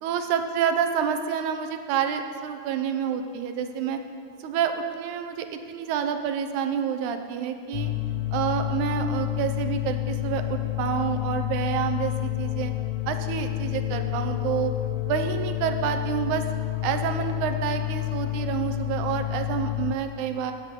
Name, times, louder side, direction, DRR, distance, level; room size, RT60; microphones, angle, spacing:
voice 1, 0.0-4.0 4.4-7.9 8.3-12.7 13.1-14.7 15.0-16.4 16.8-20.5, right 8 dB, 75° right, 7 dB, 2.0 m, -28 dB
sound 1, 7.7-20.0, left 19 dB, 75° left, 1.6 m, -29 dB
17.5 x 7.8 x 3.8 m, 2.5 s
omnidirectional pair, 3.7 m